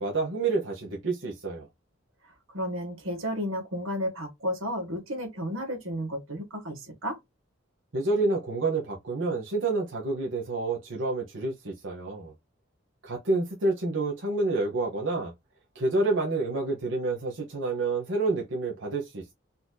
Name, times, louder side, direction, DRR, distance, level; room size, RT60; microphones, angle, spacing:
voice 1, 0.0-1.7 7.9-12.3 13.0-15.3 15.7-19.3, right 3 dB, 65° right, 1.0 m, -28 dB
voice 2, 2.5-7.2, equal, 90° right, 1.5 m, -32 dB
4.1 x 2.7 x 2.2 m
head